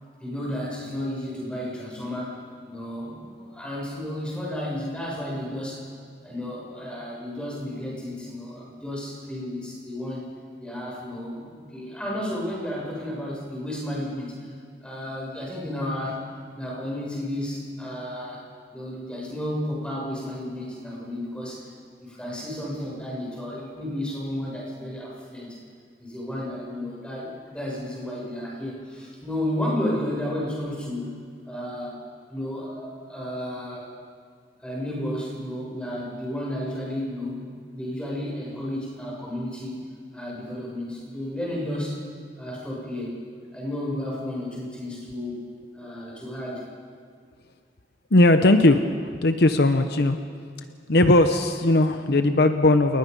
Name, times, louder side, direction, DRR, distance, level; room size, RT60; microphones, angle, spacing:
voice 1, 0.2-2.4 2.7-5.8 6.2-10.3 10.6-14.5 14.8-16.2 16.6-18.4 18.7-21.7 22.0-25.6 26.0-31.2 31.5-33.9 34.6-39.8 40.1-42.0 42.4-43.2 43.5-45.4 45.7-46.6, left 1 dB, 5° left, -4 dB, 7.1 m, -32 dB
voice 2, 48.1-48.8 49.2-50.2 50.9-53.0, left 2 dB, 65° left, 8 dB, 0.9 m, -18 dB
29.0 x 19.5 x 5.5 m, 2.1 s
head